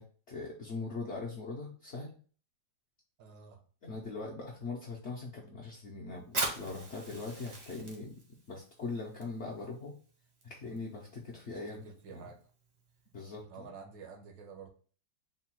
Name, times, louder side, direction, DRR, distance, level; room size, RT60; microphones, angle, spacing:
voice 1, 0.0-2.2 3.8-8.2 8.5-9.9 10.4-11.9 12.1-12.2 13.1-13.7, left 3 dB, 65° left, -3 dB, 0.7 m, -41 dB
voice 2, 3.2-3.6 11.7-12.4 13.5-14.7, right 5 dB, 80° right, 5 dB, 1.5 m, -49 dB
Fire, 6.2-13.4, right 2 dB, 40° right, 0.5 m, -43 dB
3.8 x 2.2 x 4.2 m, 0.42 s
omnidirectional pair, 2.0 m